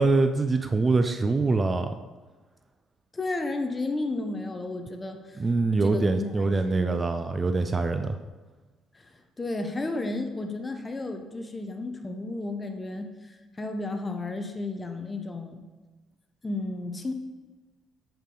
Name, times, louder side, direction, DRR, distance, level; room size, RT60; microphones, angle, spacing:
voice 1, 0.0-1.9 5.4-8.2, right 3 dB, 25° right, 8 dB, 0.4 m, -24 dB
voice 2, 3.1-5.4 5.8-7.0 8.9-15.6 16.4-17.1, left 2 dB, 20° left, 6 dB, 0.9 m, -33 dB
8.2 x 6.7 x 3.8 m, 1.3 s
cardioid pair, 110°, 0 cm